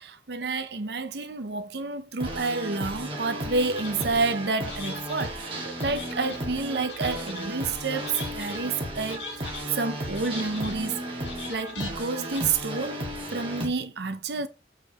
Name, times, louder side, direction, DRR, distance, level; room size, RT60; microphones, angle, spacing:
voice 1, 0.0-13.0 13.3-14.5, right 4 dB, 65° right, 0.7 m, -29 dB
sound 1, 2.2-13.7, right 1 dB, 30° right, 1.8 m, -34 dB
sound 2, 3.7-4.2 4.6-5.3 5.8-6.4 6.8-7.5 7.9-8.6 9.0-9.7 10.1-10.8 11.2-11.9 12.3-12.4, left 4 dB, 85° left, 1.7 m, -41 dB
6.6 x 5.1 x 3.0 m
head